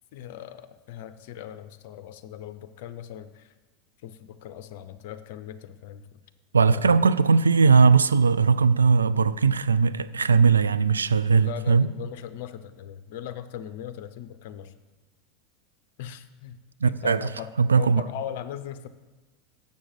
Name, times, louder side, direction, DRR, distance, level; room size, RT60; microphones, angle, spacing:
voice 1, 0.1-3.5 4.0-6.1 6.6-7.0 11.4-14.7 16.0-18.9, left 10 dB, 65° left, 0.5 m, -39 dB
voice 2, 6.5-11.9 16.8-17.3 17.6-18.0, right 5 dB, 90° right, 0.3 m, -19 dB
7.4 x 6.3 x 7.7 m
hypercardioid pair, 85°, 0 cm